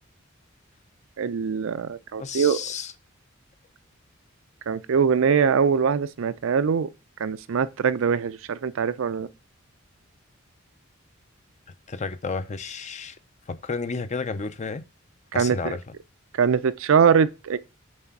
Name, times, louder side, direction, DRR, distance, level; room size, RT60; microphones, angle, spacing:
voice 1, 1.2-2.6 4.7-6.9 7.2-9.3 15.3-15.7 16.4-17.6, right 6 dB, 65° right, 0.4 m, -22 dB
voice 2, 2.2-2.9 11.9-13.2 13.5-14.8 15.3-15.8, left 4 dB, 35° left, 0.6 m, -31 dB
7.6 x 3.3 x 5.9 m
head